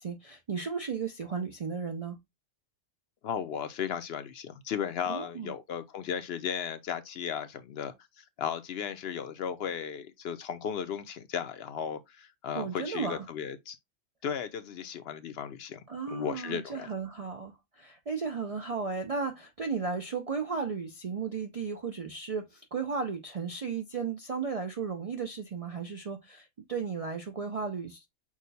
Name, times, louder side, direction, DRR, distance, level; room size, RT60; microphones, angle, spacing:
voice 1, 0.0-2.2 5.1-5.5 12.5-13.2 15.9-28.1, right 5 dB, 50° right, 0.4 m, -35 dB
voice 2, 3.2-13.8 14.2-16.9, left 8 dB, 65° left, 0.7 m, -35 dB
6.1 x 2.2 x 4.0 m
omnidirectional pair, 1.3 m